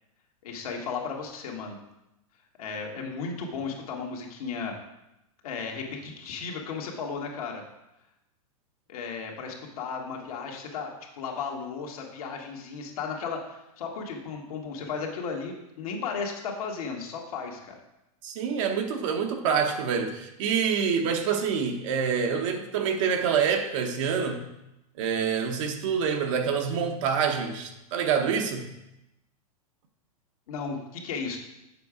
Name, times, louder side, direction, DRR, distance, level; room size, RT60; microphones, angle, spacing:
voice 1, 0.4-1.8 2.6-4.7 5.4-7.6 8.9-17.8 30.5-31.4, left 5 dB, 70° left, 1.6 m, -35 dB
voice 2, 18.2-24.5 25.0-28.7, right 6 dB, 55° right, 1.0 m, -26 dB
6.8 x 4.7 x 4.9 m
supercardioid pair, 140°, 19 cm